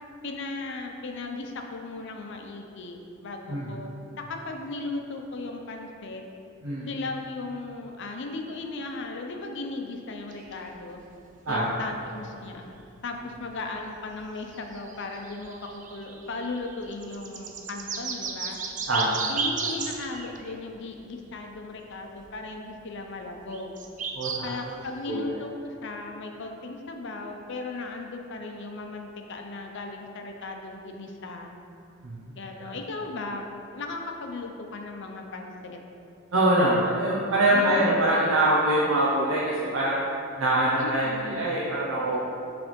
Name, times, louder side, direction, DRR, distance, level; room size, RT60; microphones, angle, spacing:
voice 1, 0.2-3.9 4.3-6.2 6.9-11.0 11.5-12.7 13.0-18.6 19.3-23.8 24.4-31.5 32.3-35.8 37.5-38.1 40.8-41.5, left 3 dB, 60° left, 3 dB, 0.6 m, -36 dB
sound 1, 10.3-10.7 11.6-11.7 13.9-14.0 14.2-14.3 14.5-20.5 22.1-22.2 23.5-24.4 25.1-25.2, right 5 dB, 40° right, 0.5 m, -34 dB
voice 2, 11.5-11.8 18.9-19.2 24.1-24.5 25.1-25.2 32.0-32.7 36.3-40.0 40.4-42.2, right 1 dB, 75° right, -7 dB, 0.8 m, -24 dB
6.1 x 3.4 x 5.2 m, 2.7 s
head